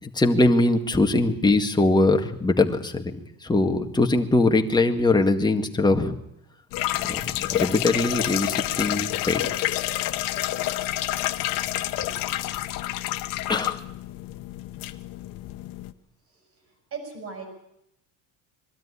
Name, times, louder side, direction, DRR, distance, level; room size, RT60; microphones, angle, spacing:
voice 1, 0.0-6.2 7.1-7.2 7.5-9.4 13.5-13.8, left 2 dB, 10° left, 4 dB, 2.0 m, -22 dB
sound 1, 6.7-15.9, left 15 dB, 70° left, 1.3 m, -29 dB
voice 2, 16.9-17.4, right 5 dB, 45° right, 4 dB, 5.6 m, -37 dB
22.5 x 13.0 x 9.9 m, 0.81 s
cardioid pair, 120°, 35 cm